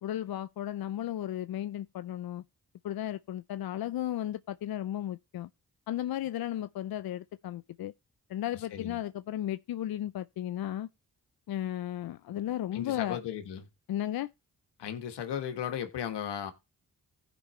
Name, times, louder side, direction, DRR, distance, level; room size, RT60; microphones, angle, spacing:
voice 1, 0.0-2.4 2.8-5.5 5.9-7.9 8.3-10.9 11.5-13.2 13.9-14.3, left 12 dB, 65° left, 0.5 m, -34 dB
voice 2, 8.5-9.0 12.7-13.7 14.8-16.5, left 9 dB, 85° left, 1.5 m, -36 dB
15.5 x 5.3 x 3.1 m
supercardioid pair, 45°, 40 cm